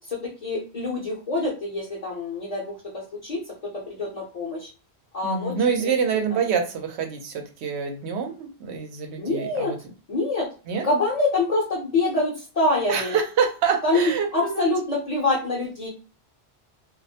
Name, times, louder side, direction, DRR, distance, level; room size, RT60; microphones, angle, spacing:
voice 1, 0.1-3.4 3.7-4.7 5.1-5.6 9.2-9.7 10.1-10.5 10.8-13.2 13.8-15.9, left 2 dB, 45° left, -4 dB, 0.6 m, -25 dB
voice 2, 5.2-9.8 10.7-10.8 12.9-14.7, right 6 dB, 90° right, 4 dB, 0.9 m, -26 dB
2.3 x 2.0 x 2.7 m, 0.35 s
omnidirectional pair, 1.1 m